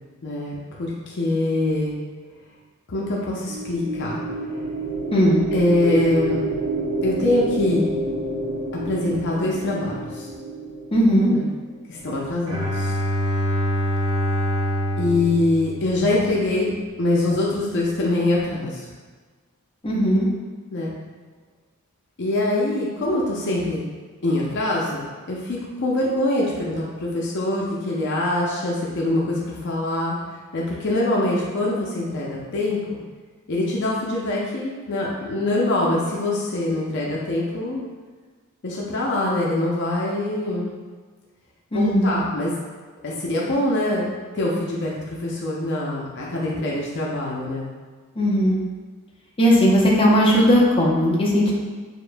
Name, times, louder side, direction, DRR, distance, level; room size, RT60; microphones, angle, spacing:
voice 1, 0.2-1.9 2.9-4.2 5.5-6.4 7.0-7.9 8.8-10.3 11.3-11.5 11.9-12.9 15.0-16.7 17.0-18.9 20.7-20.9 22.2-23.8 24.2-30.1 30.5-33.0 33.5-37.8 38.6-40.7 41.7-42.5 43.0-44.1 44.3-47.7, left 1 dB, 55° left, -4 dB, 0.6 m, -24 dB
sound 1, 3.5-11.7, right 1 dB, 60° right, 0.5 m, -28 dB
voice 2, 10.9-11.4 19.8-20.3 41.7-42.1 48.2-48.6 49.4-51.5, equal, 25° left, -5 dB, 0.7 m, -17 dB
Bowed string instrument, 12.5-16.4, equal, 80° right, 0.9 m, -25 dB
6.7 x 2.5 x 2.2 m, 1.4 s
head